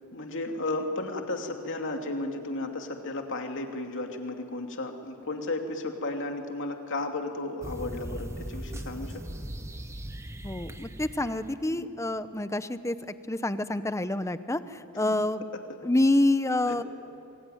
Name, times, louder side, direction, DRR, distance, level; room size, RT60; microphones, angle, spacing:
voice 1, 0.1-9.2 11.7-11.9 15.0-15.2 16.6-16.8, left 2 dB, 60° left, 3 dB, 2.7 m, -34 dB
sound 1, 7.6-11.6, right 1 dB, 15° right, 1.1 m, -39 dB
voice 2, 10.4-13.0 13.3-15.4 15.8-16.8, left 1 dB, 15° left, 12 dB, 0.8 m, -27 dB
26.5 x 23.5 x 9.4 m, 2.7 s
head